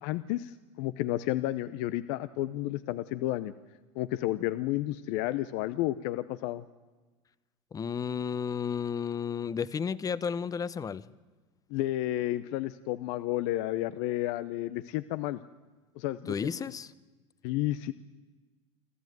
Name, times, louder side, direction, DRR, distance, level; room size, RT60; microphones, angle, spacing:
voice 1, 0.0-3.5 3.9-6.6 11.7-15.4 16.0-16.3 17.4-17.9, left 15 dB, 65° left, 14 dB, 0.8 m, -31 dB
voice 2, 7.7-11.0 16.3-16.9, left 7 dB, 25° left, 18 dB, 0.8 m, -32 dB
27.0 x 13.5 x 9.4 m, 1.3 s
hypercardioid pair, 100°, 15 cm